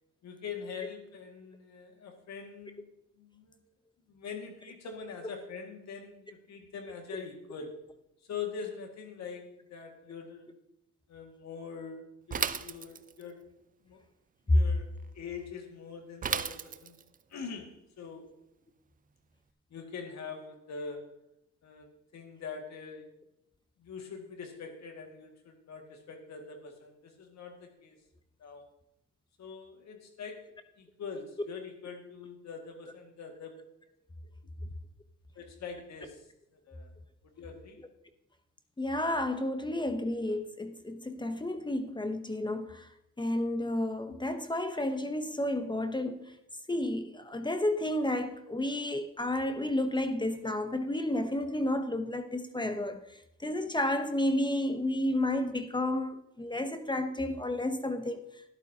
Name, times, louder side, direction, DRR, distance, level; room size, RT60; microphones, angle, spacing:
voice 1, 0.2-2.8 3.2-3.6 4.1-7.8 8.2-10.5 11.1-13.4 13.8-14.0 14.5-14.9 15.1-17.0 17.3-18.3 19.7-21.2 21.6-21.9 22.1-23.2 23.8-28.0 28.4-28.7 29.4-33.5 35.4-36.9 37.4-37.8, left 5 dB, 65° left, 2.1 m, -43 dB
Bicycle / Mechanisms, 12.3-13.3 16.2-17.1, right 7 dB, 30° right, 0.5 m, -33 dB
voice 2, 38.8-42.9 43.2-46.3 46.7-53.1 53.4-58.2, left 1 dB, 15° left, 0.8 m, -31 dB
13.0 x 11.0 x 2.8 m
cardioid pair, 90°, 30 cm